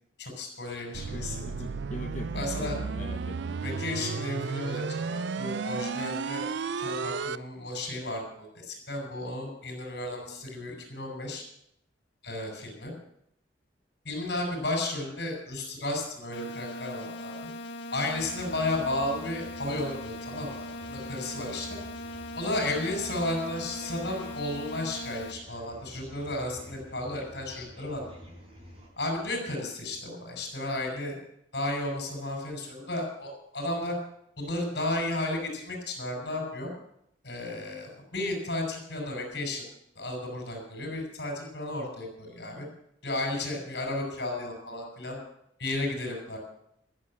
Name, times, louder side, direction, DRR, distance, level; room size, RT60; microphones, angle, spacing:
voice 1, 0.2-1.4 2.3-2.8 3.6-6.5 6.8-11.4 12.2-12.9 14.0-17.4 17.9-21.8 22.4-28.1 29.0-31.2 31.5-34.0 34.4-36.7 37.2-39.7 40.0-42.7 43.0-45.2 45.6-46.4, left 2 dB, 65° left, 2 dB, 5.6 m, -33 dB
sound 1, 0.9-7.4, right 5 dB, 75° right, 0.4 m, -33 dB
voice 2, 1.1-3.6, left 1 dB, 40° left, 3 dB, 0.9 m, -40 dB
sound 2, 16.3-25.3, left 1 dB, 85° left, 1.2 m, -40 dB
sound 3, 18.2-28.9, right 1 dB, 30° right, 4.0 m, -49 dB
14.0 x 7.6 x 8.8 m, 0.75 s
head